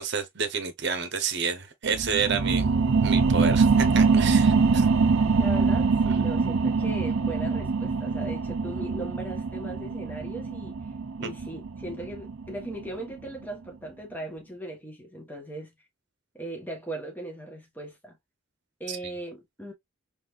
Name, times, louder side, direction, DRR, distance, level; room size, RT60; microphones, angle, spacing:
voice 1, 0.0-4.9 6.1-6.2 11.2-11.3 18.9-19.0, right 6 dB, 55° right, 1.0 m, -30 dB
sound 1, 1.8-13.0 13.4-13.5, right 4 dB, 75° right, 0.6 m, -24 dB
voice 2, 5.4-10.7 11.2-15.7 16.3-18.1 18.8-19.7, right 1 dB, 10° left, 1.3 m, -38 dB
4.1 x 3.2 x 2.5 m
head